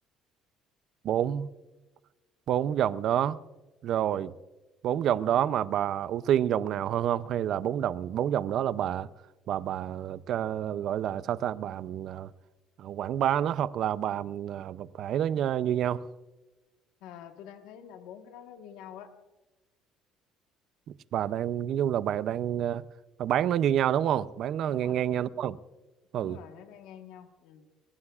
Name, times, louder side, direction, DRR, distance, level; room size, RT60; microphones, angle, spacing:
voice 1, 1.0-1.5 2.5-3.4 3.8-4.3 4.8-9.1 9.5-12.3 12.8-16.0 21.1-22.8 23.2-25.6 26.1-26.4, right 10 dB, 50° right, 0.5 m, -28 dB
voice 2, 17.0-19.1 24.7-25.0 26.2-27.7, left 9 dB, 85° left, 1.3 m, -47 dB
29.0 x 15.5 x 2.4 m
cardioid pair, 160°, 0 cm